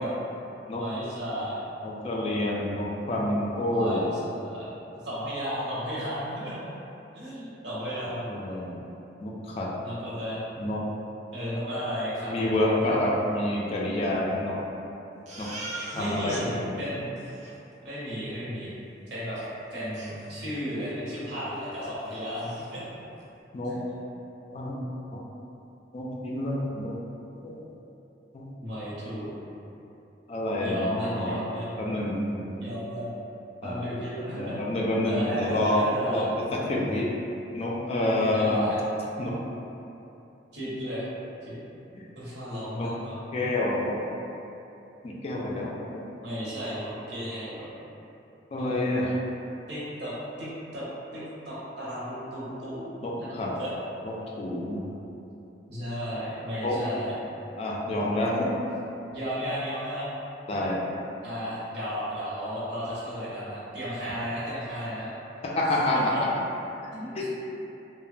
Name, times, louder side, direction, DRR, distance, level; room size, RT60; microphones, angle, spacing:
voice 1, 0.8-1.6 3.6-4.7 5.0-6.6 7.1-8.6 9.8-10.4 11.3-13.0 15.9-17.1 17.8-18.8 19.1-19.4 19.7-22.8 23.6-23.9 28.6-29.4 30.6-31.7 32.6-33.1 33.6-34.6 35.0-36.3 38.3-38.8 40.5-41.1 41.4-41.6 42.1-43.2 46.2-47.7 48.6-49.0 49.7-50.1 50.4-50.8 51.1-52.8 53.6-53.7 55.7-57.2 59.1-60.1 61.2-65.1 66.1-66.2 66.9-67.3, equal, 65° right, -9 dB, 0.9 m, -34 dB
voice 2, 1.8-4.1 8.3-8.7 9.2-9.7 10.6-10.8 12.3-14.6 15.4-15.5 15.9-16.7 23.5-23.8 24.5-24.8 25.1-25.2 25.9-27.0 27.4-27.6 28.3-28.5 30.3-31.3 31.8-32.6 33.6-33.8 34.3-37.1 37.5-38.7 39.2-39.4 41.9-42.0 42.8-42.9 43.3-44.0 45.0-46.0 48.5-49.2 53.0-53.5 54.4-54.9 56.6-56.8 57.6-58.5 60.5-60.8 65.4-66.3 67.2-67.3, left 1 dB, 35° left, -4 dB, 0.3 m, -28 dB
Crying sobbing, 15.3-16.4 16.8-16.9 17.2-17.5 19.4-19.5 19.9-20.7 21.1-21.2 21.6-21.7 22.0-22.7, right 2 dB, 40° right, 0.5 m, -41 dB
3.0 x 2.1 x 2.4 m, 2.9 s
head